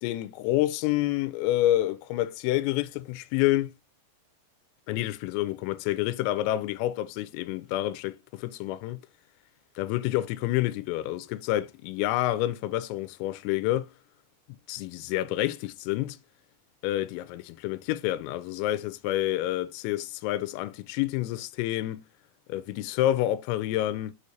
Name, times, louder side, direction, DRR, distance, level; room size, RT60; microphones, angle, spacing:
voice 1, 0.0-3.7 4.9-9.0 9.8-13.9 14.7-16.2 16.8-22.1 22.5-24.1, left 14 dB, 90° left, 3.3 m, -28 dB
6.7 x 6.4 x 2.8 m
omnidirectional pair, 5.8 m